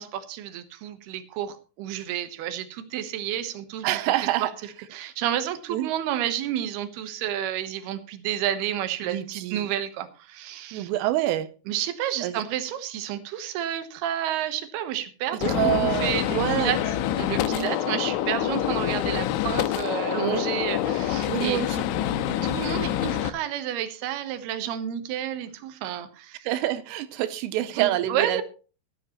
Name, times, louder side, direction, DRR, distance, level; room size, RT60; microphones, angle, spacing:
voice 1, 0.0-3.9 4.4-4.5 4.9-10.9 11.7-21.6 22.4-26.5 27.8-28.4, right 11 dB, 70° right, 2.7 m, -30 dB
voice 2, 3.8-4.5 5.7-5.9 9.0-9.7 10.7-11.5 12.2-12.4 15.5-16.7 17.5-17.7 20.1-20.5 21.3-21.8 26.5-28.4, right 14 dB, 85° right, 3.4 m, -27 dB
Gunshot gunfire, 15.4-23.3, left 11 dB, 85° left, 3.3 m, -26 dB
14.5 x 14.0 x 3.1 m
omnidirectional pair, 5.7 m